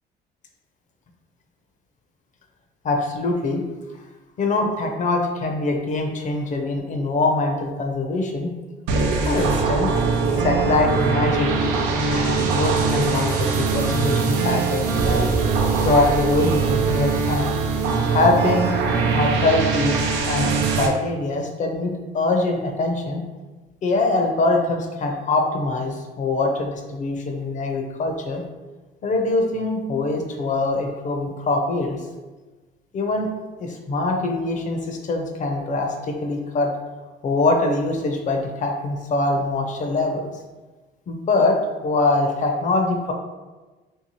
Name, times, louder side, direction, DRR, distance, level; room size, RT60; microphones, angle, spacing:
voice 1, 2.8-3.6 4.4-8.5 9.2-9.9 10.4-11.7 12.1-15.3 15.8-17.5 18.1-18.7 19.1-20.0 20.3-23.2 23.8-28.4 29.0-32.0 32.9-33.3 33.6-36.7 37.2-40.3 41.1-41.6 41.8-43.1, left 2 dB, 40° left, 3 dB, 0.5 m, -23 dB
sound 1, 8.9-20.9, right 4 dB, 85° right, 0.5 m, -21 dB
3.3 x 2.7 x 3.0 m, 1.2 s
cardioid pair, 100°, 19 cm